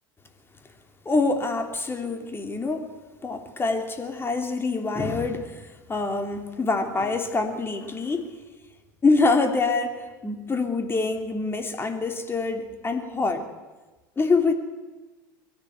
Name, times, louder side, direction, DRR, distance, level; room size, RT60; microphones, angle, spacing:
voice 1, 1.0-2.9 3.2-8.3 9.0-13.5 14.2-14.5, left 3 dB, 20° left, 5 dB, 3.2 m, -25 dB
22.0 x 16.0 x 8.1 m, 1.2 s
hypercardioid pair, 75°, 11 cm